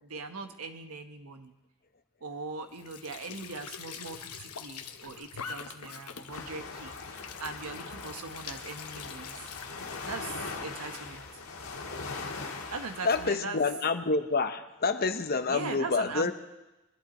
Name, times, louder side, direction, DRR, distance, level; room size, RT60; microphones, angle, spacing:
voice 1, 0.0-1.5 2.2-9.5 10.0-11.3 12.7-13.6 15.5-16.3, right 4 dB, 85° right, 7 dB, 1.2 m, -40 dB
Squeak / Sink (filling or washing) / Trickle dribble, 2.7-10.6, left 7 dB, 90° left, 1.0 m, -45 dB
sound 1, 6.3-13.3, left 4 dB, 65° left, 1.7 m, -40 dB
voice 2, 13.0-16.3, left 4 dB, 45° left, 9 dB, 0.8 m, -28 dB
22.0 x 11.0 x 4.3 m, 1.0 s
head